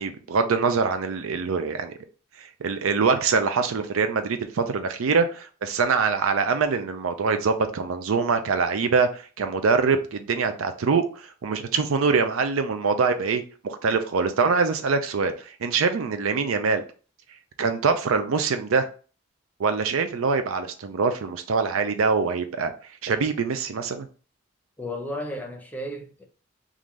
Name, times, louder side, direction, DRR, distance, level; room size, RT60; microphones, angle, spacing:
voice 1, 0.0-1.9 2.6-11.0 11.4-16.8 17.6-18.9 19.6-22.7 23.0-24.1, right 5 dB, 85° right, 0.5 m, -24 dB
voice 2, 24.8-26.2, left 1 dB, 10° left, 0.6 m, -33 dB
3.7 x 2.6 x 3.1 m
head